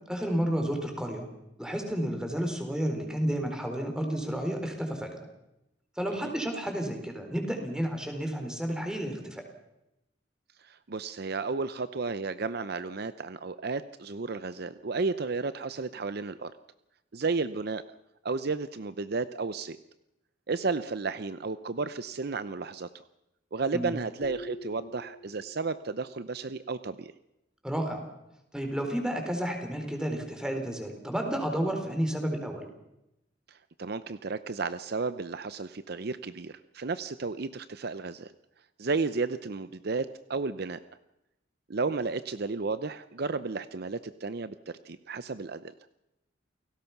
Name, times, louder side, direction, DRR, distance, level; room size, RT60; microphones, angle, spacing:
voice 1, 0.1-1.3 1.6-5.2 6.0-9.4 23.7-24.0 27.6-28.0 28.5-32.7, equal, 5° right, 4 dB, 4.1 m, -31 dB
voice 2, 10.6-16.5 17.1-17.8 18.2-19.8 20.5-22.9 23.5-27.1 33.5-38.3 38.8-40.8 41.7-45.7, right 4 dB, 55° right, 13 dB, 0.7 m, -33 dB
sound 1, 24.2-25.9, equal, 35° left, 1.4 m, -45 dB
29.5 x 18.0 x 5.9 m, 0.89 s
head